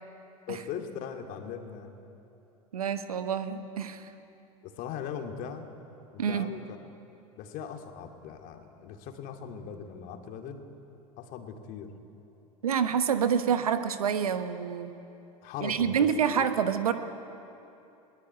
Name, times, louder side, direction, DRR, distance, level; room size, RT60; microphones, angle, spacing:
voice 1, 0.5-1.9 4.6-5.7 6.1-6.8 7.4-10.6 11.2-11.9 15.4-16.1 16.3-16.5, left 7 dB, 50° left, 4 dB, 2.5 m, -39 dB
voice 2, 2.7-4.1 6.2-6.5 12.6-14.9 15.6-16.9, right 7 dB, 75° right, 9 dB, 1.3 m, -27 dB
21.5 x 18.0 x 9.5 m, 2.9 s
figure-of-eight pair, 80°, 19 cm